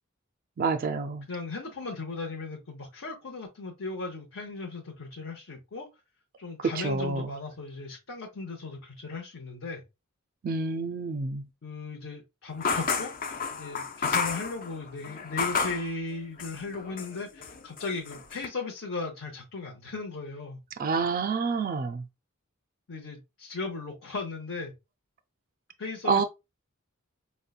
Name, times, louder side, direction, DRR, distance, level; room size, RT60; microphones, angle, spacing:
voice 1, 0.6-1.3 6.6-7.3 10.4-11.5 20.8-22.0 26.1-26.2, right 4 dB, 45° right, 0.3 m, -28 dB
voice 2, 1.3-5.9 6.4-9.8 11.6-20.6 22.9-24.7 25.8-26.2, left 3 dB, 70° left, 0.8 m, -37 dB
sound 1, 12.6-15.9 16.4-17.2 17.4-18.5, left 5 dB, 40° left, 0.4 m, -31 dB
5.2 x 2.1 x 2.3 m
head